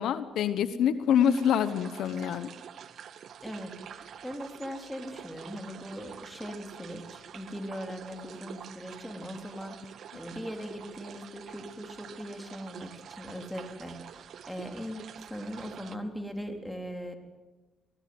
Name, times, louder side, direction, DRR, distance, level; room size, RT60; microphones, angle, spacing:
voice 1, 0.0-2.5, left 8 dB, 80° left, 12 dB, 1.2 m, -26 dB
sound 1, 1.2-16.0, right 8 dB, 65° right, 1.1 m, -47 dB
voice 2, 3.4-9.8 10.1-17.1, equal, 5° left, 4 dB, 3.7 m, -40 dB
24.5 x 18.5 x 8.0 m, 1.2 s
cardioid pair, 90°, 0 cm